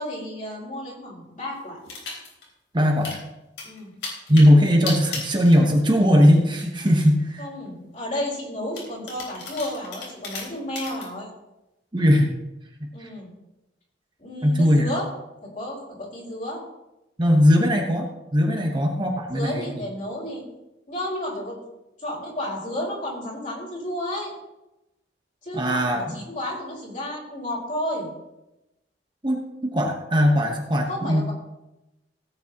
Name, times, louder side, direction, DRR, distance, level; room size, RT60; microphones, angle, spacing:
voice 1, 0.0-1.8 3.6-3.9 7.4-11.3 12.9-13.3 14.2-15.1 15.4-16.6 18.5-18.8 19.3-20.4 20.9-21.6 22.0-24.3 25.4-28.1 30.9-31.3, left 1 dB, 45° left, -5 dB, 4.6 m, -32 dB
sound 1, 1.8-2.5 2.8-3.2 3.6-6.1 6.3-7.0 7.7-7.8 8.7-11.1, left 3 dB, 65° left, 3.6 m, -35 dB
voice 2, 2.7-3.2 4.3-7.4 11.9-12.3 12.8-13.1 14.4-14.9 17.2-19.8 25.5-26.2 29.2-31.3, equal, 25° right, 1 dB, 1.1 m, -19 dB
16.5 x 9.1 x 3.0 m, 0.96 s
head